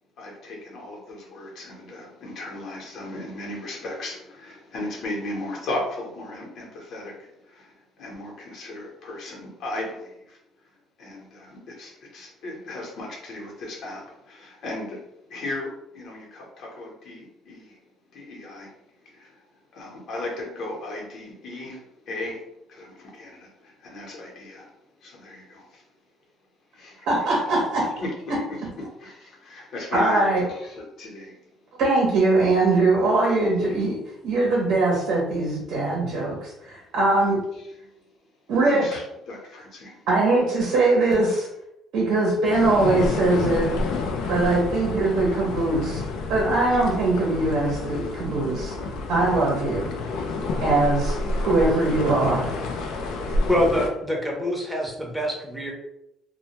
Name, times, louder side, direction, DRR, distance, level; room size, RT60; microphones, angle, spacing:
voice 1, 0.2-10.4 11.0-15.0 15.3-17.8 18.1-18.7 19.0-19.4 19.7-22.4 22.7-25.9 26.7-27.1 28.0-28.4 28.8-31.4 33.4-33.8 37.5-37.9 38.6-40.1, left 2 dB, 60° left, -1 dB, 0.8 m, -36 dB
voice 2, 27.1-27.9 29.9-30.4 31.8-37.4 38.5-38.8 40.1-41.5 41.9-43.7 44.3-46.0 46.3-48.7 49.1-49.9 50.6-52.5, right 2 dB, 75° right, -3 dB, 0.7 m, -21 dB
sound 1, 42.5-53.9, left 2 dB, 80° left, 0.3 m, -29 dB
voice 3, 53.5-55.7, left 1 dB, ahead, -2 dB, 0.6 m, -25 dB
2.1 x 2.1 x 2.8 m, 0.83 s
cardioid pair, 105°, 0 cm